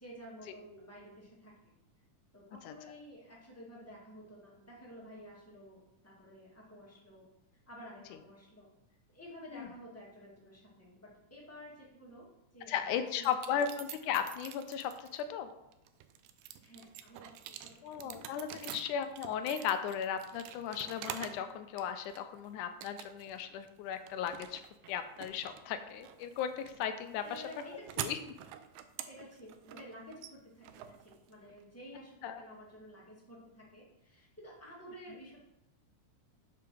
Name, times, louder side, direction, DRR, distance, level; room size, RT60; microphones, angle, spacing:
voice 1, 0.0-1.7 2.3-7.3 7.7-8.7 9.1-12.3 12.5-13.6 16.6-18.2 18.5-18.7 27.2-28.1 29.0-35.4, equal, 5° left, -4 dB, 1.2 m, -52 dB
voice 2, 12.7-15.5 17.8-27.4 28.0-28.2 32.2-32.4, left 8 dB, 80° left, 9 dB, 2.1 m, -36 dB
sound 1, 13.2-15.2 15.7-21.5 21.8-22.4 22.8-23.4 23.7-31.6, right 11 dB, 85° right, 2.1 m, -47 dB
6.7 x 4.9 x 6.1 m, 0.87 s
omnidirectional pair, 3.6 m